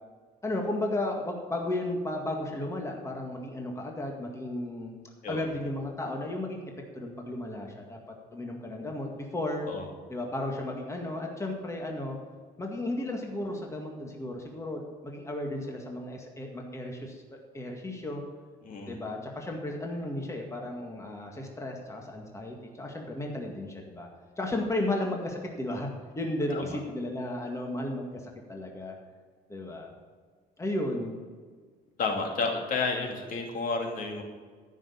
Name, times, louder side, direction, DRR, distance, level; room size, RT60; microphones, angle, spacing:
voice 1, 0.4-4.9 5.3-6.6 6.9-8.0 8.3-9.7 10.1-12.2 12.6-17.2 17.5-18.2 18.9-24.1 24.4-25.9 26.2-28.2 28.5-29.0 29.5-29.9 30.6-31.2, left 1 dB, 15° left, 1 dB, 1.9 m, -34 dB
voice 2, 18.6-19.0 26.5-26.8 32.0-34.2, left 4 dB, 55° left, 2 dB, 2.5 m, -31 dB
14.0 x 6.5 x 8.5 m, 1.6 s
cardioid pair, 110°, 17 cm